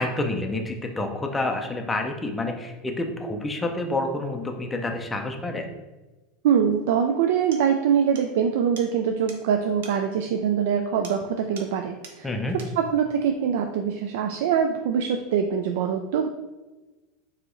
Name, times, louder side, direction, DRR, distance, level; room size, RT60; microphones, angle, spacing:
voice 1, 0.0-5.7 12.2-12.6, left 2 dB, 10° left, 3 dB, 0.4 m, -28 dB
voice 2, 6.4-16.3, right 7 dB, 70° right, 5 dB, 0.3 m, -24 dB
sound 1, 6.9-7.0 7.5-7.7 8.2-8.3 8.8-8.9 9.3-9.4 9.8-10.0 11.0-11.3 11.6-11.8 12.0-12.2 12.6-12.8, right 4 dB, 85° right, 0.8 m, -43 dB
4.8 x 2.8 x 3.8 m, 1.2 s
supercardioid pair, 170°, 0 cm